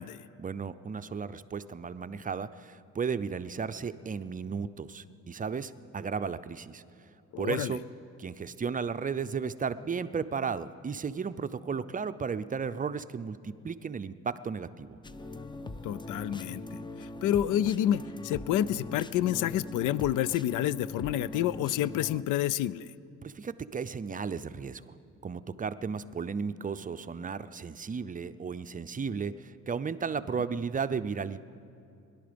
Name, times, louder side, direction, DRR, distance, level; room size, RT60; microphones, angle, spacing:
voice 1, 0.4-6.8 7.4-7.8 8.2-15.0 23.2-25.0 25.2-31.4, right 5 dB, 25° right, 13 dB, 0.5 m, -34 dB
voice 2, 7.3-7.7 15.8-16.8 17.2-22.9, left 12 dB, 80° left, 19 dB, 0.5 m, -29 dB
sound 1, 15.0-22.2, left 2 dB, 15° left, 0.6 m, -41 dB
21.5 x 11.5 x 5.2 m, 2.5 s
cardioid pair, 90°, 30 cm